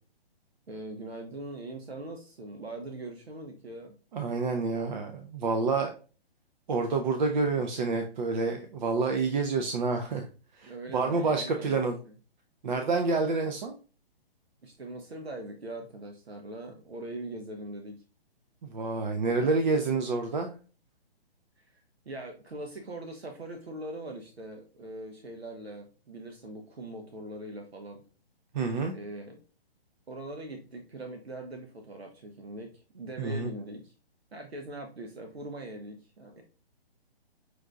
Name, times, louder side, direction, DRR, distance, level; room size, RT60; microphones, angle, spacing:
voice 1, 0.7-3.9 10.6-12.1 14.6-18.0 19.4-19.6 21.6-21.8 22.0-28.0 28.9-29.4 30.1-33.9 34.3-36.4, right 1 dB, 85° right, 4 dB, 0.8 m, -41 dB
voice 2, 4.1-5.9 6.7-10.3 10.5-12.0 12.6-13.7 18.6-20.5 28.5-29.0 33.2-33.5, right 4 dB, 50° right, 5 dB, 0.6 m, -28 dB
6.0 x 2.6 x 2.5 m, 0.36 s
figure-of-eight pair, 135°, 30 cm